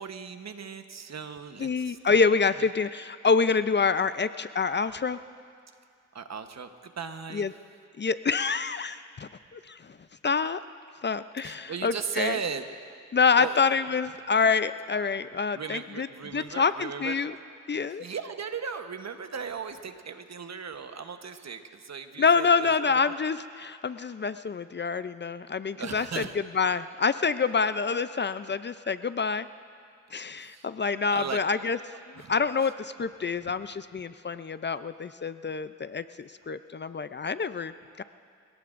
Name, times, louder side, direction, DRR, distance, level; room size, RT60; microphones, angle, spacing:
voice 1, 0.0-2.0 2.5-2.7 6.1-7.5 11.4-13.0 13.4-13.6 15.5-17.4 18.0-23.0 25.8-26.4 30.4-30.7 31.1-31.4 32.1-32.7, right 6 dB, 55° right, 8 dB, 1.1 m, -37 dB
voice 2, 1.6-5.2 7.3-7.5 8.0-10.0 10.2-10.6 11.0-12.4 13.1-16.1 16.3-17.3 17.7-18.1 22.2-26.2 26.5-29.5 30.1-31.8 32.3-38.0, left 5 dB, 35° left, 13 dB, 0.5 m, -27 dB
24.5 x 18.0 x 2.6 m, 2.3 s
cardioid pair, 50°, 31 cm